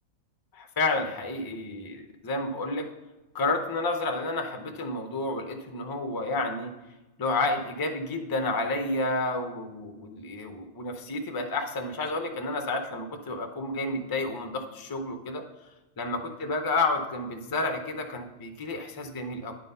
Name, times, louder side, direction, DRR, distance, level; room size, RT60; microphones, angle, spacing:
voice 1, 0.5-2.9 3.3-6.7 7.2-15.4 16.0-19.5, left 2 dB, 30° left, 5 dB, 0.4 m, -30 dB
9.8 x 3.9 x 5.4 m, 1.1 s
omnidirectional pair, 1.4 m